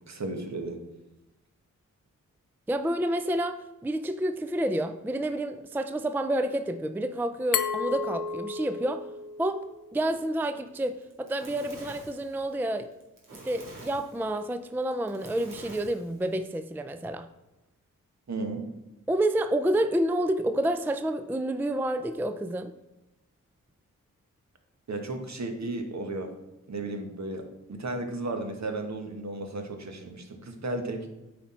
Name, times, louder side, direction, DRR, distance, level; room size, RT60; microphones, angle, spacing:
voice 1, 0.1-0.8 18.3-18.7 24.9-26.3 26.7-31.1, right 2 dB, 55° right, 5 dB, 1.3 m, -34 dB
voice 2, 2.7-9.0 9.4-12.9 13.3-17.3 19.1-22.7, right 1 dB, 5° right, 9 dB, 0.4 m, -29 dB
Glass, 7.5-10.3, left 6 dB, 75° left, 0.6 m, -33 dB
Fire, 10.9-16.4, right 2 dB, 75° right, 2.1 m, -48 dB
8.1 x 4.4 x 4.3 m, 0.98 s
cardioid pair, 50°, 33 cm